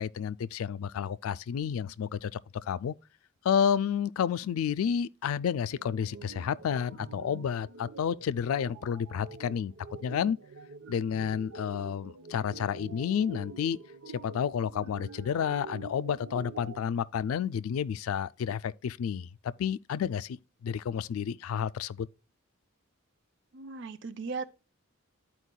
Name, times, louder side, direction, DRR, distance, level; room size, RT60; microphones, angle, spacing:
voice 1, 0.0-2.4 2.7-2.9 3.4-9.7 10.0-10.4 10.9-13.8 14.2-22.1, left 8 dB, 85° left, 0.3 m, -30 dB
sound 1, 5.7-16.8, right 4 dB, 90° right, 0.8 m, -47 dB
voice 2, 23.5-24.5, right 4 dB, 60° right, 0.6 m, -37 dB
12.5 x 4.5 x 2.2 m
head